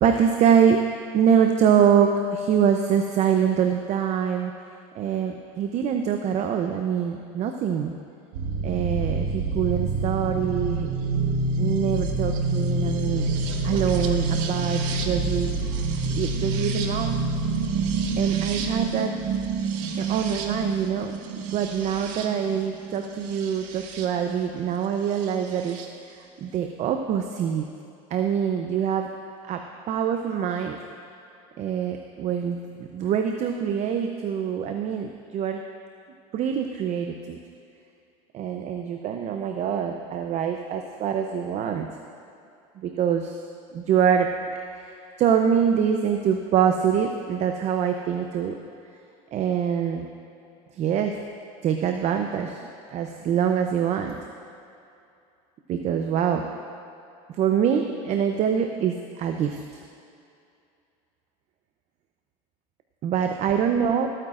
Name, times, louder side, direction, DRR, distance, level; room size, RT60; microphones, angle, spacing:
voice 1, 0.0-0.8 1.1-4.5 4.9-7.9 8.6-10.9 11.6-13.3 13.6-15.5 16.1-17.2 18.2-19.1 20.0-25.8 26.4-27.6 28.1-29.1 29.5-29.6 29.9-30.8 31.6-35.6 36.3-37.4 38.3-41.9 42.8-43.4 43.7-44.3 44.7-44.9 45.2-48.6 49.3-50.1 50.8-51.2 51.6-52.6 52.9-54.2 55.7-56.5 57.4-59.6 63.0-64.1, right 8 dB, 45° right, 5 dB, 0.7 m, -24 dB
sound 1, 8.3-24.1 25.2-25.8, right 3 dB, 80° right, 1.2 m, -27 dB
23.5 x 9.0 x 2.5 m, 2.6 s
supercardioid pair, 115°, 16 cm